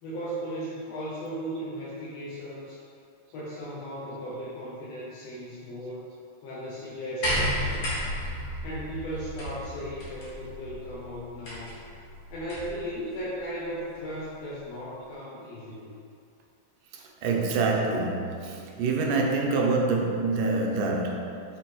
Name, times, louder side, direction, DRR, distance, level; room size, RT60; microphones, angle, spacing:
voice 1, 0.0-2.8 3.3-6.1 6.4-7.8 8.6-11.8 12.3-15.9, equal, 65° left, -8 dB, 1.9 m, -36 dB
sound 1, 7.2-12.8 13.9-14.0, equal, 35° left, 1.6 m, -33 dB
voice 2, 17.2-21.4, right 3 dB, 85° right, 0 dB, 2.4 m, -26 dB
6.0 x 5.7 x 4.5 m, 2.5 s
omnidirectional pair, 3.7 m